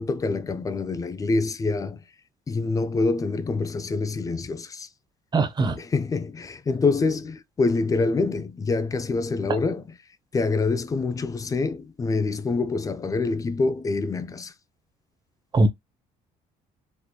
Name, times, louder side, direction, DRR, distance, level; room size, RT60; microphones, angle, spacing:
voice 1, 0.0-2.0 2.5-4.9 5.6-9.8 10.3-14.5, left 3 dB, 20° left, 0.4 m, -26 dB
voice 2, 5.3-5.8 15.5-15.7, right 3 dB, 25° right, 0.7 m, -20 dB
3.2 x 2.9 x 2.2 m
cardioid pair, 110°, 17 cm